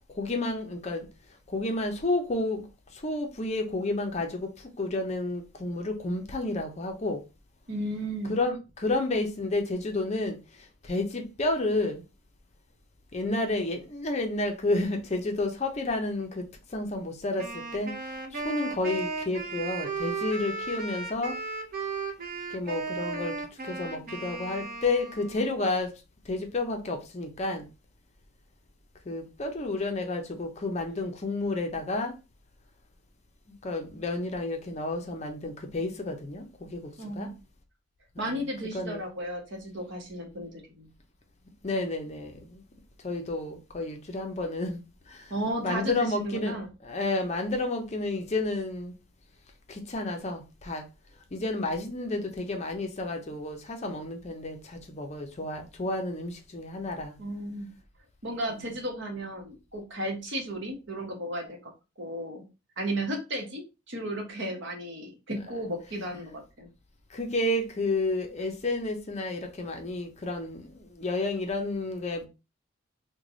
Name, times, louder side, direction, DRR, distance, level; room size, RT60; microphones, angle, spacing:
voice 1, 0.2-1.1 1.5-2.6 3.0-4.5 4.8-7.2 8.3-10.4 10.8-12.0 13.1-16.4 16.7-17.9 18.3-21.4 22.5-23.3 23.7-25.9 26.3-27.7 29.1-32.1 33.6-36.9 37.1-37.3 38.2-38.4 38.7-39.0 41.6-42.6 43.0-44.8 45.1-45.2 45.6-46.6 46.8-48.9 49.7-50.8 51.3-57.1 67.1-72.3, left 2 dB, 30° left, 0.5 m, -31 dB
voice 2, 7.7-8.4 37.0-37.3 38.2-40.9 45.3-46.7 57.2-57.7 58.2-61.7 62.0-62.4 62.8-66.7, right 1 dB, 55° right, 1.0 m, -34 dB
Wind instrument woodwind instrument, 17.4-25.5, right 4 dB, 40° right, 0.6 m, -35 dB
3.2 x 2.2 x 3.7 m
head